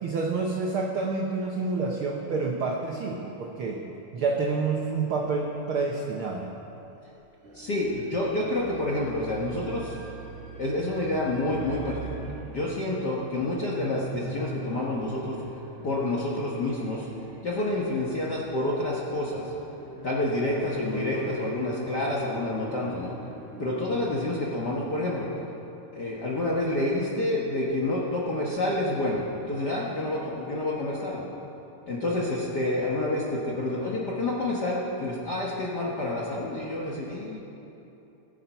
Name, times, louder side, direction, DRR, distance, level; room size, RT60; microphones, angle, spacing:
voice 1, 0.0-3.8 4.1-6.5, right 4 dB, 85° right, 0 dB, 1.1 m, -28 dB
sound 1, 7.4-24.3, right 1 dB, 35° right, 1.1 m, -42 dB
voice 2, 7.5-10.0 10.5-15.4 15.8-17.1 17.4-19.5 20.0-23.1 23.6-25.3 25.9-31.3 31.9-37.4, left 1 dB, 55° left, -4 dB, 1.1 m, -28 dB
sound 2, 7.8-12.2, right 8 dB, 50° right, 1.5 m, -43 dB
19.5 x 7.5 x 5.6 m, 2.9 s
omnidirectional pair, 3.7 m